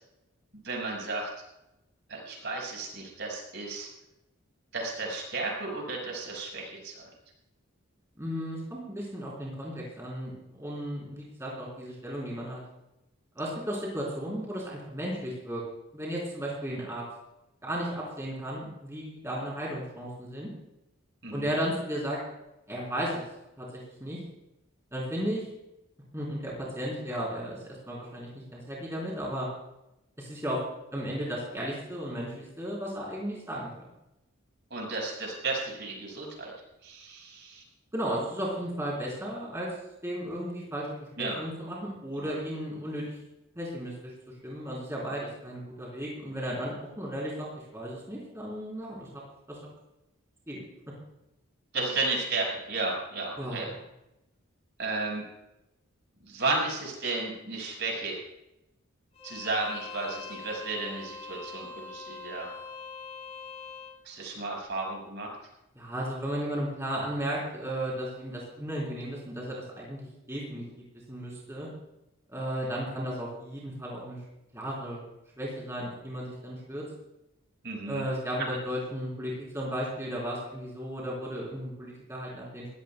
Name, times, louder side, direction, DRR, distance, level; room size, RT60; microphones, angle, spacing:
voice 1, 0.6-1.3 2.1-3.9 4.7-7.0 21.2-21.5 34.7-36.5 36.8-37.6 41.2-41.4 42.2-42.3 51.7-53.7 54.8-55.2 56.3-58.2 59.2-62.5 64.0-65.3 77.6-78.0 78.4-78.5, right 3 dB, 55° right, -1 dB, 5.6 m, -33 dB
voice 2, 8.2-12.6 13.3-15.6 15.9-17.0 17.6-20.5 21.3-22.2 22.7-23.2 23.6-24.2 24.9-25.4 26.1-29.5 30.2-30.6 30.9-33.7 37.9-39.7 40.0-43.2 43.6-44.1 44.4-47.5 47.7-49.2 49.5-49.6 50.5-50.6 53.4-53.7 65.7-70.6 71.1-71.7 72.3-74.2 74.5-75.0 75.4-76.8 77.9-82.7, equal, 15° right, -4 dB, 4.0 m, -34 dB
Bowed string instrument, 59.1-64.0, left 4 dB, 30° left, 4.4 m, -43 dB
22.0 x 16.0 x 2.3 m, 0.89 s
head